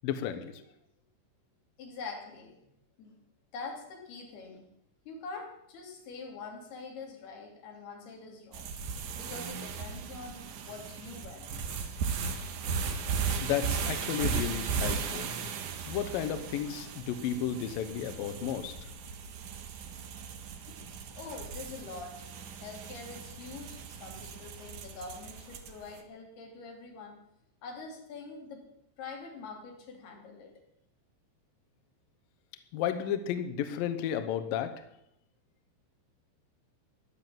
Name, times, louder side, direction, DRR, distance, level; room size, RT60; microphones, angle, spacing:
voice 1, 0.0-0.5 13.4-15.3 15.9-18.7 32.7-34.7, left 9 dB, 75° left, 9 dB, 2.1 m, -33 dB
voice 2, 1.8-2.6 3.0-3.2 3.5-4.7 5.1-8.8 9.2-11.7 20.7-20.8 21.1-22.3 22.6-27.2 27.6-28.6 29.0-30.5, left 4 dB, 60° left, 2 dB, 4.7 m, -44 dB
sound 1, 8.5-25.9, right 6 dB, 65° right, 2.0 m, -37 dB
16.0 x 11.0 x 7.5 m, 0.79 s
omnidirectional pair, 5.4 m